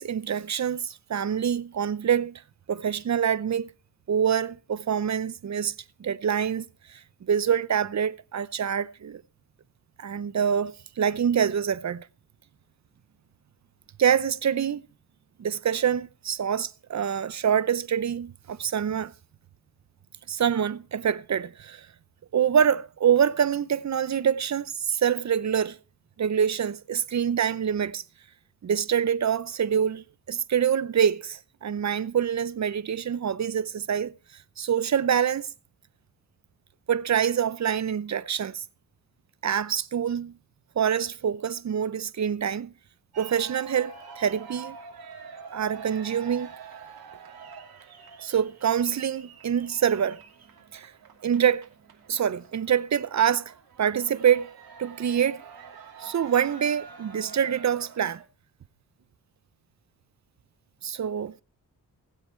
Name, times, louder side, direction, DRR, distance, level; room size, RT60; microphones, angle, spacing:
voice 1, 0.0-2.4 2.7-3.7 4.1-5.7 6.0-7.0 7.3-9.2 10.0-12.1 14.0-14.8 15.4-19.1 20.3-21.9 22.3-25.8 26.2-28.0 28.6-34.1 34.6-35.5 36.9-38.6 39.4-40.4 40.8-42.7 43.2-44.8 45.5-46.5 48.2-50.2 50.7-50.9 51.2-51.7 52.1-53.5 53.8-54.5 54.8-55.4 56.0-58.2 60.8-61.3, right 8 dB, 50° right, 0.7 m, -25 dB
sound 1, 43.1-58.3, right 6 dB, 75° right, 2.7 m, -46 dB
21.0 x 7.8 x 4.4 m
cardioid pair, 80°, 37 cm